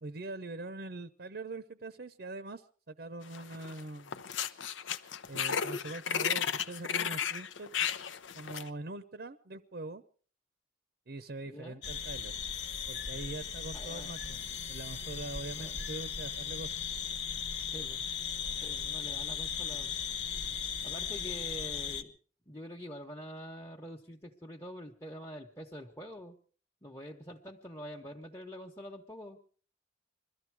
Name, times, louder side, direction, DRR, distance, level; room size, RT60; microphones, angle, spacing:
voice 1, 0.0-4.2 5.3-7.7 8.3-10.0 11.1-12.3 12.9-16.7, right 2 dB, 55° right, 11 dB, 0.7 m, -43 dB
sound 1, 3.3-3.8 4.1-8.7, left 8 dB, 75° left, 0.8 m, -34 dB
voice 2, 11.5-11.8 13.7-14.1 15.6-15.8 17.7-18.0 18.6-20.0 20.8-22.1 22.5-26.4 26.8-29.4, equal, 15° left, -1 dB, 1.1 m, -46 dB
sound 2, 11.8-22.0, left 7 dB, 60° left, 1.3 m, -37 dB
22.0 x 14.0 x 4.7 m, 0.44 s
head